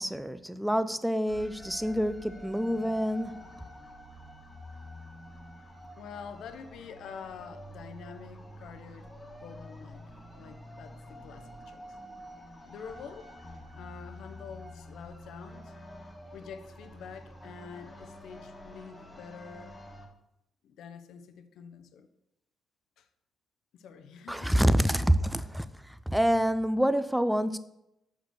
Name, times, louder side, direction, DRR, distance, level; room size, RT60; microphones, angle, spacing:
voice 1, 0.0-3.3 24.3-27.6, equal, 5° right, 0.5 m, -27 dB
sound 1, 1.3-20.1, equal, 15° left, 1.8 m, -48 dB
voice 2, 6.0-9.1 9.4-12.0 12.6-13.3 13.7-15.7 16.3-19.8 20.6-22.1 23.0-23.1 23.7-24.5, left 6 dB, 75° left, 0.7 m, -47 dB
6.1 x 5.2 x 6.7 m
cardioid pair, 90°, 0 cm